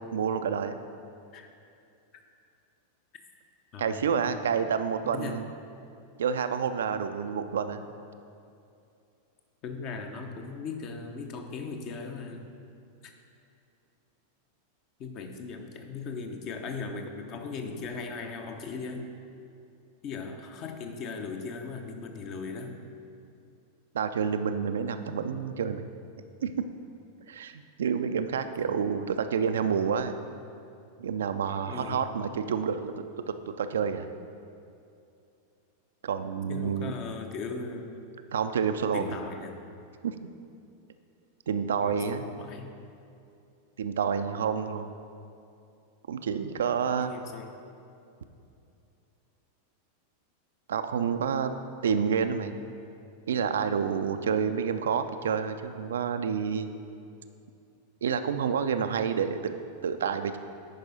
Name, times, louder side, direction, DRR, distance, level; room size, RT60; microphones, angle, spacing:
voice 1, 0.1-0.8 3.8-5.5 6.2-7.8 23.9-25.8 26.4-26.6 27.3-30.2 31.0-34.1 36.0-36.9 38.3-39.1 40.0-40.2 41.5-42.3 43.8-44.9 46.1-47.1 50.7-51.5 51.8-52.6 53.3-56.7 58.0-60.4, right 7 dB, 65° right, 9 dB, 0.3 m, -29 dB
voice 2, 3.7-4.3 5.1-5.4 9.6-12.5 13.0-13.1 15.0-19.1 20.0-22.8 31.7-32.1 36.5-38.0 38.9-39.5 41.8-42.7 47.0-47.6, left 4 dB, 40° left, 5 dB, 0.7 m, -38 dB
10.5 x 4.8 x 3.9 m, 2.6 s
figure-of-eight pair, 90°, 0 cm